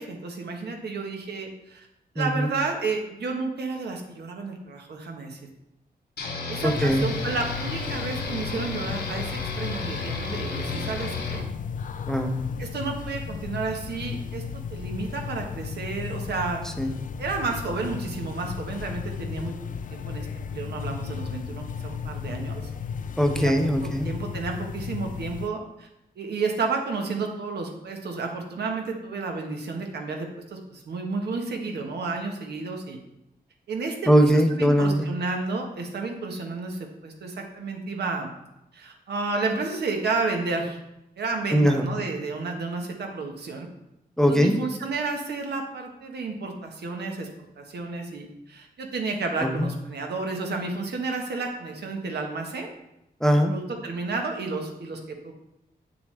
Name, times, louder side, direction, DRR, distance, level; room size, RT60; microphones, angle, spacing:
voice 1, 0.0-1.9 2.1-5.4 6.5-11.5 12.6-14.4 14.7-16.6 17.2-19.5 19.9-22.6 23.3-23.5 23.8-25.9 26.2-33.0 33.7-34.1 34.5-38.3 38.7-40.8 41.2-43.7 44.3-47.3 47.6-52.7 53.5-55.3, right 3 dB, 90° right, 2 dB, 1.2 m, -31 dB
voice 2, 2.2-2.5 6.6-7.1 12.1-12.5 16.8-17.0 23.2-24.1 34.1-35.1 41.5-41.9 44.2-44.6 49.4-49.7 53.2-53.5, equal, 5° left, 5 dB, 0.6 m, -21 dB
sound 1, 6.2-11.4, left 4 dB, 75° left, 1.1 m, -33 dB
sound 2, 6.6-25.5, left 6 dB, 50° left, 0.4 m, -35 dB
8.2 x 6.8 x 3.3 m, 0.88 s
wide cardioid pair, 160°, 17 cm